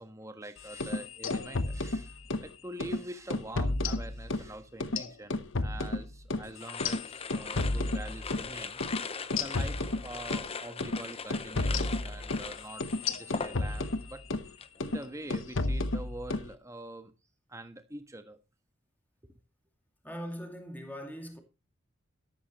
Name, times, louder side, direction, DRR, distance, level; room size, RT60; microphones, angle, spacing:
voice 1, 0.0-14.2 14.8-17.1 17.5-18.4 19.2-19.3, right 1 dB, 15° right, 1.4 m, -45 dB
sound 1, 0.7-2.5 2.8-3.0 3.3-4.5 4.8-8.5 8.8-9.0 9.3-10.5 10.8-11.0 11.3-14.5 14.8-15.0 15.3-16.5, left 2 dB, 60° left, 1.0 m, -32 dB
sound 2, 6.6-14.0 14.3-14.8, left 5 dB, 30° left, 0.7 m, -40 dB
voice 2, 20.0-21.4, equal, 10° left, 2.3 m, -40 dB
13.0 x 12.5 x 3.0 m
head